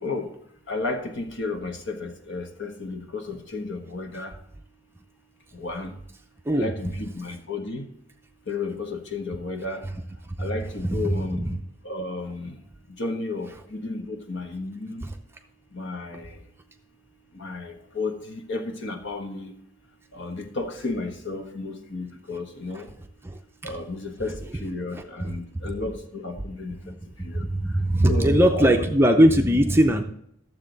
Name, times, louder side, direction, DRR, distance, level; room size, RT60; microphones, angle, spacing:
voice 1, 0.7-4.3 5.6-5.9 6.5-7.9 8.5-9.8 10.4-11.6 11.8-12.5 13.0-15.0 15.7-16.3 17.4-19.5 20.1-22.9 23.6-26.7 27.2-27.4 28.1-28.8, left 3 dB, 55° left, 4 dB, 1.3 m, -32 dB
voice 2, 10.8-11.5 15.0-15.1 22.7-22.8 23.2-23.7 25.2-25.4 26.8-27.0 27.3-30.0, right 1 dB, 10° right, 4 dB, 0.5 m, -21 dB
12.5 x 7.4 x 4.0 m, 0.72 s
head